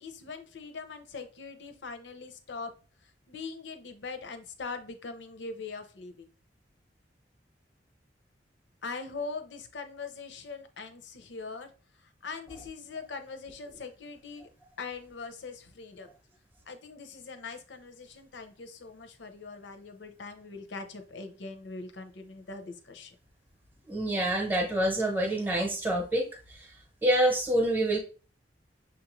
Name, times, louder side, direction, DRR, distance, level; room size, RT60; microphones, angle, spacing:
voice 1, 0.0-2.7 3.3-6.2 8.8-11.7 12.2-14.5 14.8-16.1 16.7-23.1, left 4 dB, 75° left, 8 dB, 0.7 m, -41 dB
voice 2, 23.9-26.3 27.0-28.0, right 1 dB, 10° right, 1 dB, 0.8 m, -26 dB
6.2 x 2.5 x 3.0 m, 0.37 s
head